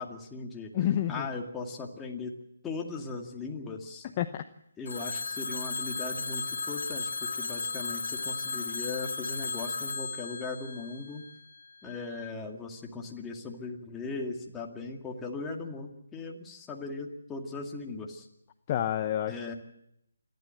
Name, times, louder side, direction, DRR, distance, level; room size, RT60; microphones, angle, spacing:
voice 1, 0.0-0.7 1.1-2.3 2.6-4.1 4.8-11.2 11.8-18.3 19.3-19.5, left 3 dB, 10° left, 0 dB, 2.2 m, -38 dB
voice 2, 0.7-1.3 4.2-4.4 18.7-19.3, left 11 dB, 30° left, 8 dB, 0.8 m, -28 dB
Telephone, 4.9-11.7, left 4 dB, 75° left, 1.1 m, -35 dB
28.5 x 12.0 x 7.8 m, 0.80 s
figure-of-eight pair, 155°, 0 cm